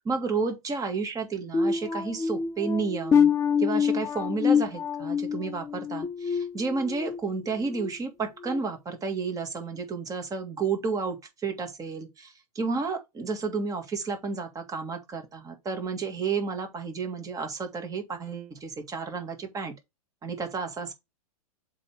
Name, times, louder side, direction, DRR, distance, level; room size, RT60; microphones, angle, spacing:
voice 1, 0.1-3.3 3.6-19.7 20.2-20.9, right 4 dB, 20° right, 2.0 m, -31 dB
sound 1, 1.5-7.2 7.6-7.9 8.4-8.6, left 6 dB, 15° left, 0.6 m, -26 dB
7.5 x 3.5 x 5.0 m
hypercardioid pair, 120°, 20 cm